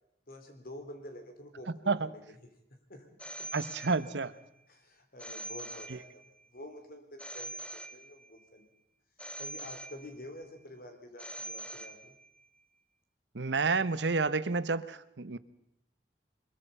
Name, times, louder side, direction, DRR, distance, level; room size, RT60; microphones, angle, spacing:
voice 1, 0.3-2.2 2.7-3.5 4.7-8.7 9.4-12.1, left 1 dB, 55° left, 5 dB, 3.6 m, -48 dB
Telephone, 3.2-4.4 5.2-6.4 7.2-8.4 9.2-10.4 11.2-12.4, right 2 dB, 5° left, 1.1 m, -44 dB
voice 2, 3.5-4.3 5.9-6.0 13.3-15.4, right 4 dB, 85° right, 14 dB, 0.9 m, -30 dB
23.0 x 21.5 x 5.5 m, 0.80 s
head